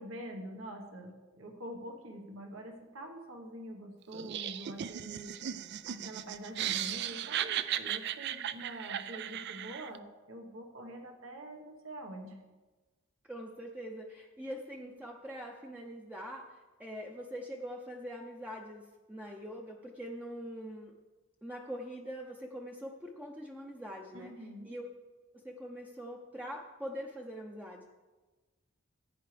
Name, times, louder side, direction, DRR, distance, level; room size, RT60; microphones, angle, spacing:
voice 1, 0.0-5.3 5.9-12.4 24.1-24.7, right 1 dB, 80° right, 2 dB, 1.4 m, -45 dB
Laughter, 4.1-10.0, right 10 dB, 55° right, 0.4 m, -36 dB
voice 2, 13.2-20.9 21.4-24.3 24.6-24.9 25.3-27.9, equal, 5° right, 1 dB, 0.6 m, -43 dB
15.0 x 9.3 x 3.4 m, 1.3 s
head